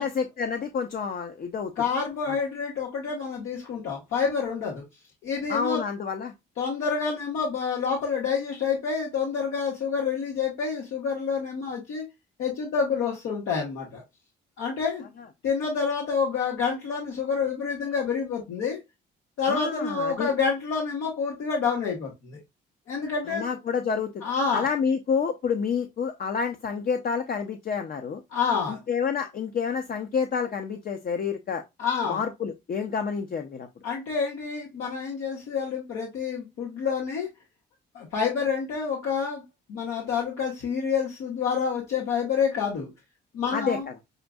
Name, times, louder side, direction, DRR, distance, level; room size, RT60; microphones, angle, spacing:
voice 1, 0.0-1.9 2.3-2.4 5.5-6.3 19.5-20.3 23.3-24.2 24.5-28.2 28.7-31.6 32.1-33.7 43.5-43.9, left 6 dB, 50° left, 0.6 m, -29 dB
voice 2, 1.8-4.8 5.2-5.8 6.6-12.0 12.4-14.0 14.6-15.0 15.4-18.8 19.4-22.4 22.9-23.4 24.2-24.7 28.3-28.8 31.8-32.2 33.8-37.3 37.9-39.4 39.7-42.9 43.3-43.8, left 6 dB, 85° left, 1.3 m, -28 dB
6.4 x 2.6 x 2.3 m
cardioid pair, 90°, 20 cm